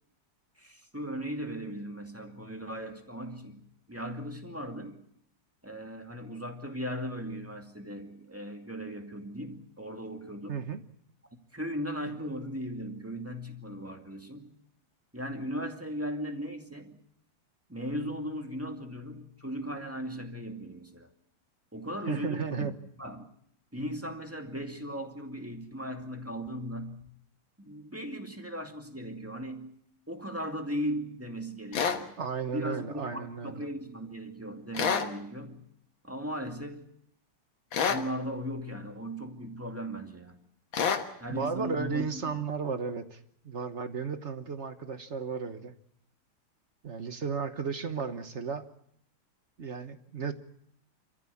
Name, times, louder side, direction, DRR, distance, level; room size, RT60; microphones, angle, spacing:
voice 1, 0.6-5.1 5.6-10.6 11.3-14.5 15.1-17.0 17.7-21.1 21.7-22.7 23.0-23.3 23.7-27.1 27.6-29.7 30.1-32.2 32.5-35.7 36.0-36.9 37.8-40.4 41.2-42.4, equal, 5° right, 4 dB, 2.1 m, -37 dB
voice 2, 10.5-10.8 22.1-22.7 32.2-33.6 40.8-40.9 41.3-45.7 46.8-48.6 49.6-50.3, right 5 dB, 40° right, 10 dB, 1.2 m, -34 dB
sound 1, 31.7-32.0 34.7-35.1 37.7-38.1 40.7-41.1, left 6 dB, 65° left, 2.2 m, -27 dB
27.5 x 14.5 x 8.6 m, 0.71 s
omnidirectional pair, 2.3 m